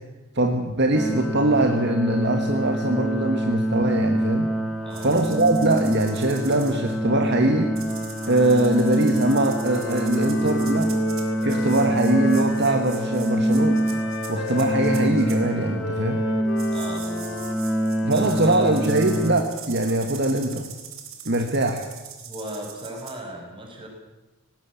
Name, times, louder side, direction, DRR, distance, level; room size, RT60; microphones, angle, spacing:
voice 1, 0.3-4.5 5.0-7.7 8.3-10.9 11.4-13.8 14.3-16.2 18.0-20.7 21.2-21.8, right 1 dB, 50° right, 4 dB, 1.6 m, -22 dB
sound 1, 0.9-19.4, right 1 dB, ahead, 2.3 m, -25 dB
voice 2, 4.8-5.3 16.7-17.5 18.1-18.8 22.2-23.9, right 1 dB, 25° right, 1 dB, 5.7 m, -36 dB
sound 2, 4.9-6.9 7.8-15.4 16.6-23.1, right 8 dB, 75° right, 3.9 m, -42 dB
Wind instrument woodwind instrument, 7.8-12.8 13.5-18.5, left 2 dB, 60° left, 2.1 m, -34 dB
19.0 x 18.5 x 8.5 m, 1.1 s
head